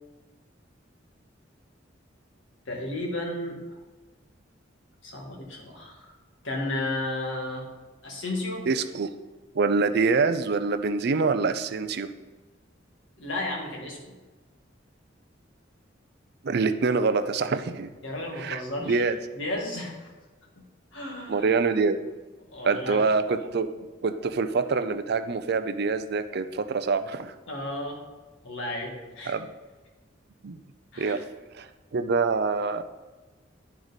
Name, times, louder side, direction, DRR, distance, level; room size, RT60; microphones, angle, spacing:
voice 1, 2.7-3.8 5.0-6.1 6.4-7.7 8.0-8.7 13.2-14.1 18.0-19.0 19.3-20.1 20.6-20.7 20.9-21.5 22.5-23.0 27.5-28.0 28.4-29.3 30.9-31.2, left 1 dB, 80° left, -1 dB, 1.9 m, -33 dB
voice 2, 8.7-9.1 9.5-12.1 16.4-17.9 18.4-18.6 18.9-19.2 21.3-22.0 22.6-23.7 24.0-27.3 29.3-29.5 30.4-30.6 31.0-31.2 31.5-32.8, right 4 dB, 55° right, 10 dB, 0.5 m, -25 dB
10.5 x 4.7 x 4.0 m, 1.2 s
head